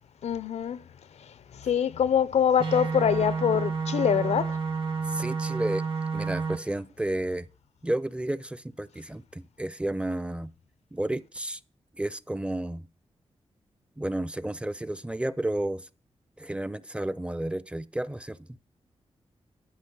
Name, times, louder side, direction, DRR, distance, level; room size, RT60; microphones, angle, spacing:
voice 1, 0.2-0.8 1.2-4.6, left 8 dB, 85° left, 0.6 m, -25 dB
sound 1, 2.6-6.6, right 5 dB, 55° right, 1.5 m, -30 dB
voice 2, 5.1-5.8 6.1-7.5 7.8-10.5 10.9-11.6 12.0-12.9 14.0-15.9 16.4-18.5, right 1 dB, 10° right, 0.5 m, -31 dB
12.0 x 5.3 x 7.1 m
wide cardioid pair, 105°, 11 cm